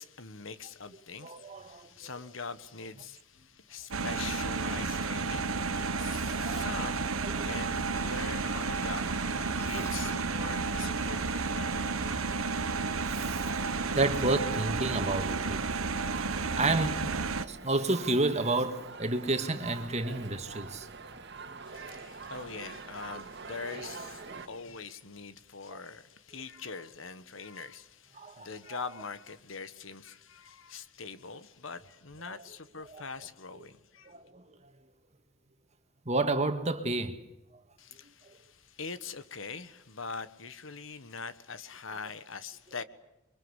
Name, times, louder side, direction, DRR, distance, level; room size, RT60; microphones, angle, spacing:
voice 1, 0.0-9.3 9.6-11.7 21.7-34.1 37.8-42.8, left 5 dB, 65° left, 1.4 m, -43 dB
voice 2, 1.2-1.9 6.2-6.7 7.2-7.7 9.5-9.9 13.1-13.5 14.0-17.1 17.4-20.9 21.7-21.8 24.3-24.4 28.2-28.5 32.3-32.4 32.9-33.0 34.1-34.4 36.1-37.2, right 2 dB, 30° right, 2.0 m, -31 dB
sound 1, 3.9-17.5, right 4 dB, 80° right, 1.2 m, -32 dB
sound 2, 7.9-14.4, left 1 dB, 15° left, 1.7 m, -46 dB
sound 3, 13.0-24.5, right 4 dB, 55° right, 2.0 m, -45 dB
28.0 x 24.0 x 8.2 m
head